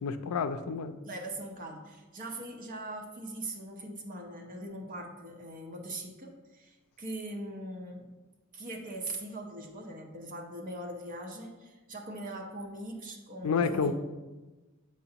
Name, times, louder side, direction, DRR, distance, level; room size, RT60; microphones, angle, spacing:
voice 1, 0.0-1.0 13.4-13.9, left 5 dB, 90° left, 10 dB, 0.4 m, -29 dB
voice 2, 1.0-8.1 8.5-13.9, right 1 dB, 40° right, 2 dB, 0.8 m, -41 dB
7.8 x 4.5 x 2.8 m, 1.2 s
head